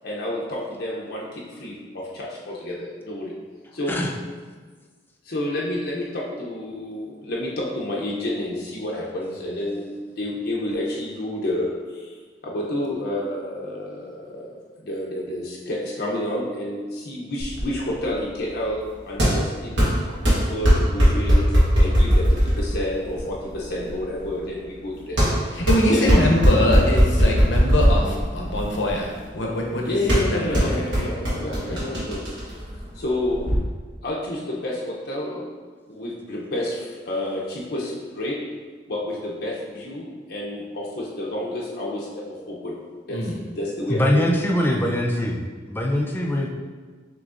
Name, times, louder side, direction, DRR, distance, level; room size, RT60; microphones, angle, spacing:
voice 1, 0.0-3.3 3.7-4.0 4.6-4.7 5.2-12.2 12.4-19.9 20.2-25.5 25.9-26.3 29.8-32.5 32.9-33.5 34.0-35.5 35.9-38.4 38.9-42.8 43.1-44.5, left 1 dB, 60° left, -4 dB, 0.6 m, -29 dB
sound 1, 17.4-33.6, equal, 80° right, 1.2 m, -21 dB
voice 2, 25.5-29.1 29.3-29.9 30.3-30.7 31.7-31.8 43.1-43.3, left 1 dB, 85° left, -1 dB, 0.8 m, -23 dB
voice 3, 43.9-45.4 45.7-46.5, left 1 dB, 10° left, 0 dB, 0.4 m, -22 dB
6.2 x 3.0 x 2.4 m, 1.5 s
head